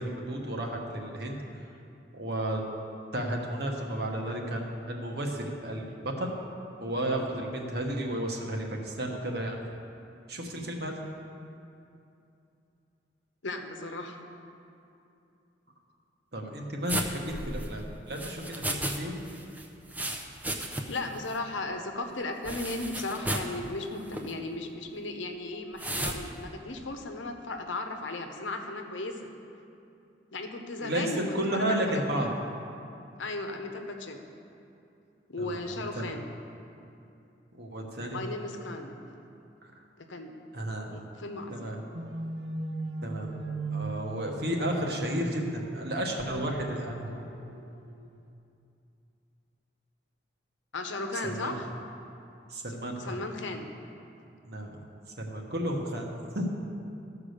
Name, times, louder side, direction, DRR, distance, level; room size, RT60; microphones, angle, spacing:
voice 1, 0.0-1.4 2.2-2.6 3.1-6.3 6.8-9.6 10.3-10.9 16.3-17.8 18.1-19.2 30.8-32.3 35.4-36.0 37.6-38.2 40.5-40.9 41.5-41.8 43.0-43.3 43.7-47.2 51.2-51.6 52.5-53.2 54.4-54.8 55.2-56.6, right 1 dB, 55° right, 1 dB, 1.2 m, -32 dB
voice 2, 13.4-14.2 20.9-29.2 30.3-31.4 31.7-31.8 33.2-34.3 35.3-36.3 38.1-39.0 40.0-40.3 40.9-41.8 50.7-51.6 53.1-53.7, left 2 dB, 85° left, 5 dB, 0.9 m, -36 dB
sound 1, 16.9-19.0 19.3-21.1 21.3-21.4 22.4-23.5 24.1-24.3 25.8-26.2, right 1 dB, 10° right, 0.5 m, -34 dB
sound 2, 41.9-48.2, right 2 dB, 70° right, 0.9 m, -39 dB
13.5 x 4.9 x 6.5 m, 2.7 s
head